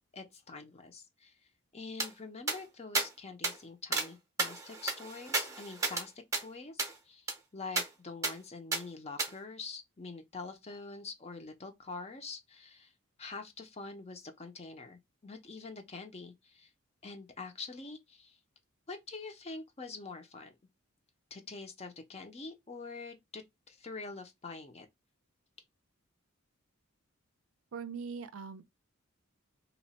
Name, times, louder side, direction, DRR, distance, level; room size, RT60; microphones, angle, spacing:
voice 1, 0.1-1.4 1.7-6.1 6.4-12.9 13.2-16.7 17.0-18.4 18.9-20.6 21.3-24.9, left 4 dB, 30° left, 0.5 m, -45 dB
sound 1, 2.0-2.1 2.5-2.6 2.9-3.1 3.4-3.5 3.9-4.1 4.4-6.0 6.3-6.4 6.8-6.9 7.3-7.4 7.8-7.9 8.2-8.3 8.7-8.8 9.2-9.3, right 3 dB, 15° right, 0.6 m, -32 dB
voice 2, 27.7-28.7, right 5 dB, 70° right, 0.4 m, -41 dB
2.9 x 2.1 x 4.1 m
head